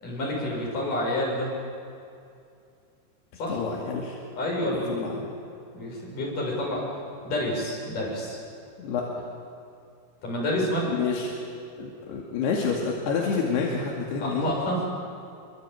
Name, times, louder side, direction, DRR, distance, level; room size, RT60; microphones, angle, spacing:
voice 1, 0.0-1.5 3.4-3.6 4.3-5.1 5.7-6.8 7.2-8.4 10.2-10.9 14.2-14.8, left 1 dB, 50° left, -2 dB, 8.7 m, -28 dB
voice 2, 3.5-4.2 4.7-5.2 8.8-9.1 10.9-11.3 11.8-14.6, left 5 dB, 80° left, -2 dB, 4.5 m, -28 dB
26.5 x 24.0 x 9.2 m, 2.4 s
omnidirectional pair, 4.6 m